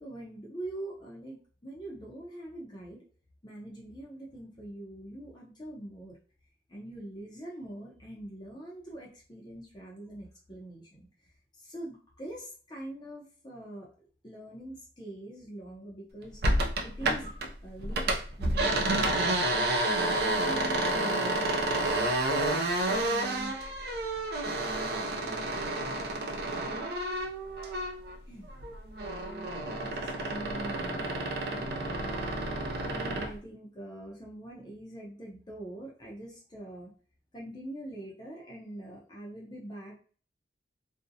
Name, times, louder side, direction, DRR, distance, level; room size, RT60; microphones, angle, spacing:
voice 1, 0.0-3.0 3.4-6.2 6.7-13.9 14.2-16.4 16.8-17.4 17.6-18.1 18.4-19.4 19.8-21.4 23.0-23.6 25.2-25.4 28.3-28.7 29.6-31.2 31.5-32.1 32.9-36.9 37.3-40.0, right 1 dB, 25° left, -4 dB, 0.5 m, -43 dB
sound 1, 16.4-17.5 17.8-28.2 28.5-33.3, right 1 dB, 60° right, 0.4 m, -30 dB
2.5 x 2.0 x 2.6 m, 0.41 s
head